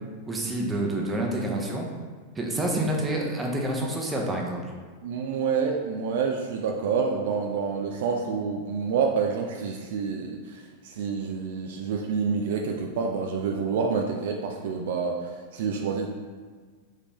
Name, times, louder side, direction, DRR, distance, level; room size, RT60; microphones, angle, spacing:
voice 1, 0.3-1.9 2.4-4.6, right 1 dB, 15° right, 0 dB, 0.7 m, -28 dB
voice 2, 5.0-16.1, right 5 dB, 55° right, 2 dB, 0.3 m, -28 dB
3.7 x 3.6 x 3.0 m, 1.6 s
figure-of-eight pair, 90°, 0 cm